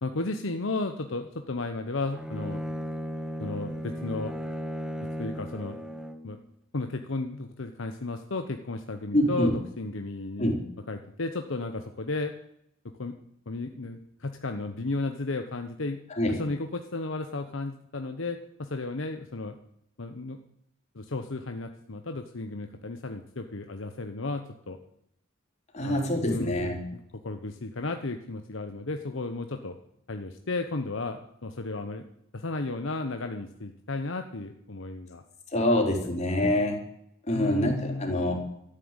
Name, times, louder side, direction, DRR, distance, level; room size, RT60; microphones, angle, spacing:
voice 1, 0.0-2.6 3.4-4.3 5.0-5.8 6.2-6.4 6.7-10.5 10.9-12.3 13.0-13.1 13.5-16.0 16.3-19.6 20.0-20.4 20.9-24.8 25.8-26.5 27.2-29.8 30.1-32.1 32.3-35.2 35.7-35.8 36.4-36.7 37.3-38.2, left 3 dB, 70° left, 6 dB, 1.0 m, -34 dB
Bowed string instrument, 2.1-6.3, equal, 5° right, 1.0 m, -35 dB
voice 2, 9.1-9.5 10.4-10.6 16.1-16.4 25.7-26.8 35.5-36.8 37.3-38.3, left 1 dB, 35° left, 1 dB, 3.7 m, -25 dB
13.0 x 10.0 x 8.9 m, 0.75 s
head